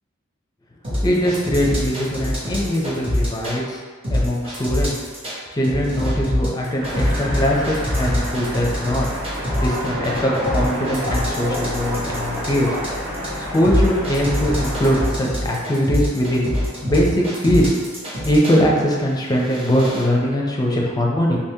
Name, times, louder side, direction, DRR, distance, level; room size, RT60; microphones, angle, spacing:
sound 1, 0.8-3.6 4.0-5.4 5.6-18.6 19.2-20.0, left 1 dB, 30° right, 0.8 m, -24 dB
voice 1, 1.0-3.8 4.1-5.0 5.5-9.1 9.6-12.8 13.4-16.5 16.8-17.8 18.2-21.4, equal, 20° left, -2 dB, 0.5 m, -21 dB
sound 2, 6.8-15.1, equal, 65° right, 1.5 m, -28 dB
3.5 x 2.8 x 2.8 m, 1.5 s
head